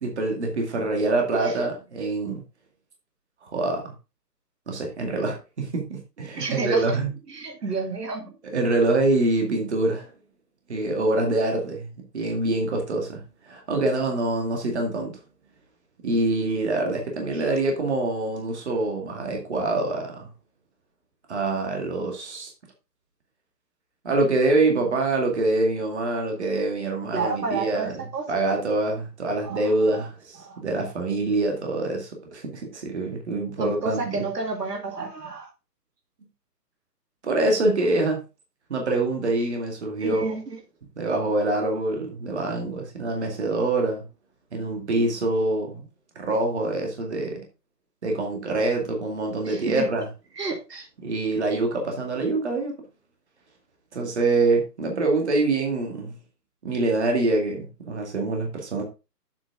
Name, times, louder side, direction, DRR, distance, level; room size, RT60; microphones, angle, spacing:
voice 1, 0.0-2.4 3.4-3.9 4.7-7.1 8.4-10.1 10.7-11.9 12.1-15.1 16.0-20.3 21.3-22.5 24.0-34.3 37.2-38.2 38.7-40.4 41.0-44.0 44.5-45.9 46.2-47.5 48.0-50.1 51.0-52.7 53.9-56.2 56.6-58.8, right 2 dB, 45° right, 2.2 m, -25 dB
voice 2, 6.4-7.0 7.3-8.3 17.3-17.4 27.1-28.2 29.4-30.1 30.4-30.6 33.6-35.5 40.0-40.6 49.4-49.9 50.3-50.9, right 4 dB, 75° right, 2.3 m, -31 dB
7.8 x 6.1 x 3.8 m
hypercardioid pair, 175°, 49 cm